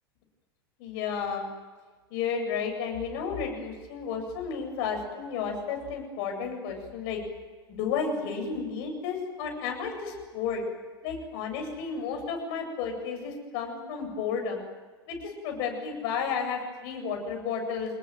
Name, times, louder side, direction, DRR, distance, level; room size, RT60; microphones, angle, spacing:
voice 1, 0.8-1.5 2.1-7.2 7.7-10.6 11.0-14.6 15.1-18.0, left 6 dB, 55° left, 3 dB, 8.0 m, -32 dB
27.5 x 20.5 x 9.4 m, 1.4 s
figure-of-eight pair, 80°, 13 cm